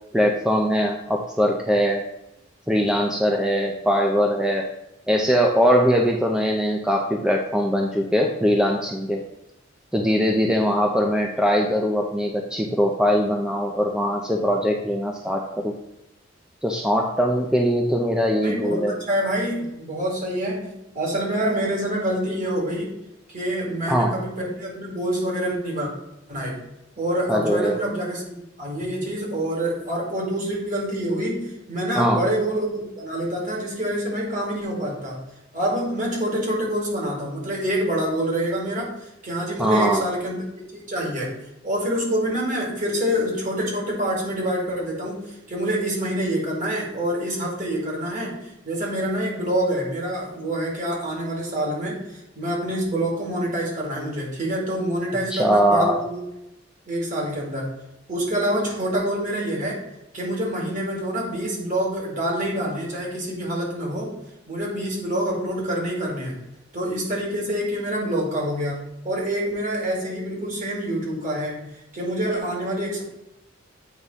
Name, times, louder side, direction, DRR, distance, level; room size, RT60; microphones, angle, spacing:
voice 1, 0.1-2.0 2.7-4.7 5.1-9.2 9.9-15.8 16.6-19.0 23.9-24.2 27.3-27.8 31.9-32.2 39.6-40.0 55.3-56.0, equal, 5° right, 1 dB, 0.5 m, -21 dB
voice 2, 18.4-23.0 23.3-25.9 26.3-26.7 27.0-35.2 35.5-41.4 41.6-56.2 56.9-57.7 58.1-59.8 60.1-64.1 64.5-66.4 66.7-73.0, right 1 dB, 45° right, -3 dB, 2.3 m, -26 dB
8.2 x 3.0 x 5.3 m, 0.89 s
head